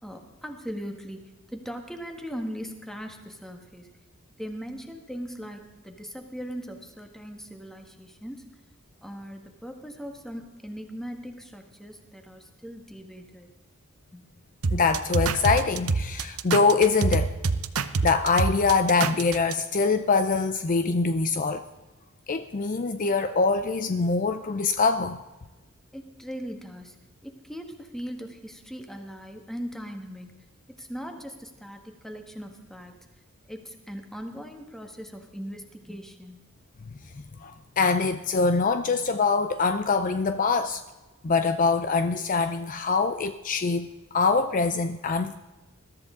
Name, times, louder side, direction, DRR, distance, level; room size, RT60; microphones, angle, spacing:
voice 1, 0.0-3.9 4.4-8.5 9.0-13.5 14.1-14.2 25.9-27.0 27.2-30.3 30.7-32.9 33.5-36.4, equal, ahead, 4 dB, 1.5 m, -39 dB
sound 1, 14.6-19.5, right 4 dB, 80° right, 0.8 m, -26 dB
voice 2, 14.7-17.3 18.0-21.6 22.3-25.2 37.1-40.8 41.2-43.9 44.1-45.3, left 4 dB, 40° left, 10 dB, 0.5 m, -24 dB
21.0 x 13.5 x 3.7 m, 1.2 s
head